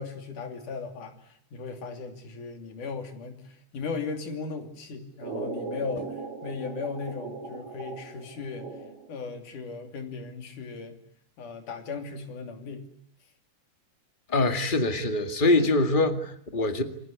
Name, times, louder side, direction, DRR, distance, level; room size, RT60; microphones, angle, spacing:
voice 1, 0.0-8.7 9.1-11.0 11.4-12.9, left 4 dB, 75° left, 6 dB, 4.4 m, -37 dB
sound 1, 5.2-9.2, right 4 dB, 45° right, 4.7 m, -38 dB
voice 2, 14.3-16.8, left 2 dB, 20° left, 7 dB, 1.6 m, -24 dB
28.5 x 21.0 x 9.5 m, 0.68 s
omnidirectional pair, 3.6 m